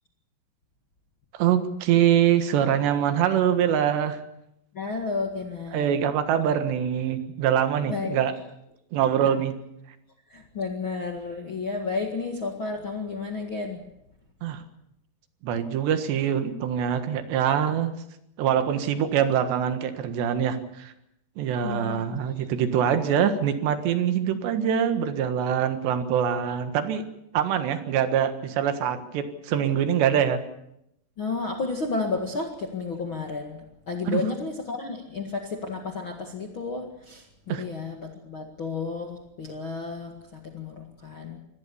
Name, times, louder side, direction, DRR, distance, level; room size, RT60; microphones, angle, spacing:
voice 1, 1.3-4.2 5.7-8.3 8.9-9.6 14.4-14.6 15.4-17.9 18.4-20.9 21.4-27.0 27.3-30.4 34.1-34.2 37.5-37.6, right 9 dB, 85° right, 9 dB, 3.8 m, -24 dB
voice 2, 4.7-5.9 7.9-8.2 10.3-13.8 21.6-22.0 31.2-41.4, left 4 dB, 40° left, 2 dB, 2.0 m, -32 dB
25.0 x 17.5 x 7.1 m, 0.80 s
omnidirectional pair, 4.8 m